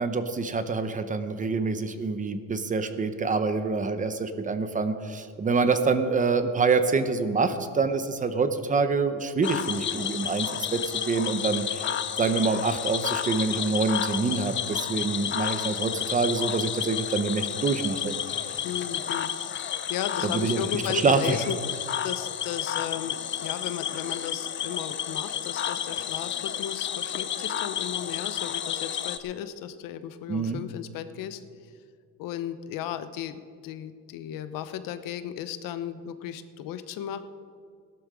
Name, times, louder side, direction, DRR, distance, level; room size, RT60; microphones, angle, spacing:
voice 1, 0.0-11.9 12.2-18.4 20.2-21.4 30.3-30.6, right 4 dB, 25° right, 9 dB, 0.8 m, -26 dB
Cricket / Frog, 9.4-29.2, left 9 dB, 35° left, 0.7 m, -31 dB
voice 2, 18.6-21.6 22.0-31.4 32.2-37.2, left 10 dB, 75° left, 11 dB, 0.9 m, -35 dB
17.0 x 12.0 x 4.9 m, 2.1 s
cardioid pair, 150°, 34 cm